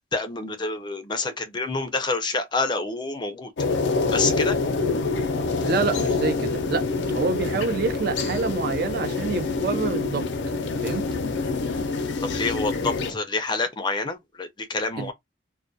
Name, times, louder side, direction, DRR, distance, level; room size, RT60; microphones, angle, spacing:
voice 1, 0.1-3.5 4.1-4.6 12.2-15.1, left 3 dB, 25° left, 0.4 m, -27 dB
sound 1, 3.6-13.1, left 3 dB, 80° left, 0.5 m, -26 dB
voice 2, 5.6-10.3 10.8-11.0 15.0-15.1, right 5 dB, 55° right, 0.3 m, -27 dB
2.2 x 2.1 x 2.5 m
head